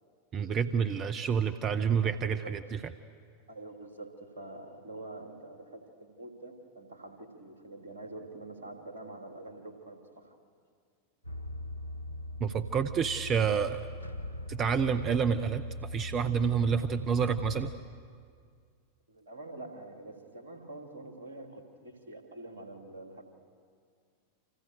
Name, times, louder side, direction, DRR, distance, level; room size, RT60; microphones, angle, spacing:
voice 1, 0.3-2.6 12.4-13.8 14.5-17.7, right 7 dB, 30° right, 11 dB, 0.9 m, -28 dB
voice 2, 2.0-2.5 3.5-10.4 19.1-23.2, right 2 dB, 70° right, 4 dB, 3.2 m, -46 dB
sound 1, 11.2-17.7, left 1 dB, 85° right, 1.1 m, -40 dB
30.0 x 27.0 x 6.8 m, 2.1 s
figure-of-eight pair, 90°, 0 cm